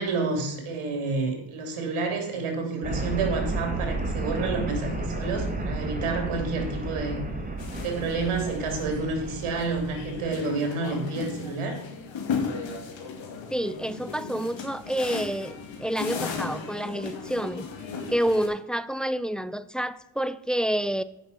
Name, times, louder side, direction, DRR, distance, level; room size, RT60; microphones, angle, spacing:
voice 1, 0.0-7.2 7.8-11.8, right 3 dB, 75° right, 2.9 m, -29 dB
sound 1, 2.8-10.3, right 2 dB, 15° right, 2.1 m, -32 dB
sound 2, 7.6-18.5, left 5 dB, 65° left, 2.1 m, -36 dB
voice 2, 13.5-17.7 18.1-21.0, equal, ahead, 0.4 m, -28 dB
8.3 x 6.1 x 5.8 m
supercardioid pair, 60°, 50 cm